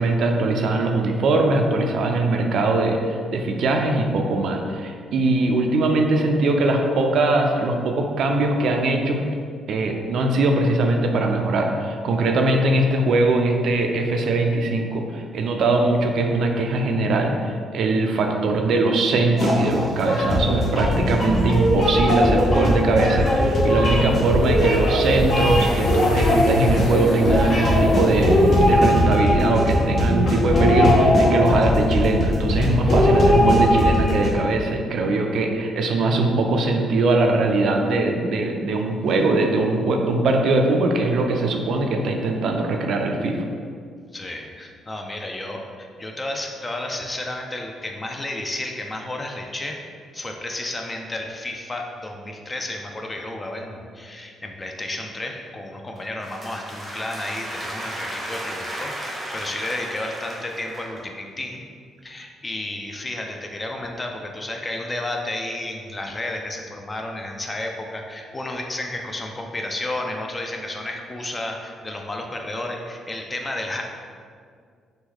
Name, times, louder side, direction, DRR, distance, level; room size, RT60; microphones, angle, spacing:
voice 1, 0.0-9.2 9.7-17.4 17.7-28.4 28.6-43.4, right 2 dB, 70° right, 3 dB, 0.3 m, -21 dB
sound 1, 19.4-34.3, left 1 dB, 45° left, 0.7 m, -19 dB
sound 2, 20.2-29.0, equal, 85° left, 0.6 m, -35 dB
voice 2, 44.1-49.8 50.1-61.6 62.0-73.8, left 1 dB, 25° left, 2 dB, 0.4 m, -32 dB
sound 3, 55.9-61.1, right 1 dB, 10° right, 0.7 m, -34 dB
3.0 x 2.2 x 3.6 m, 2.1 s
cardioid pair, 90°, 0 cm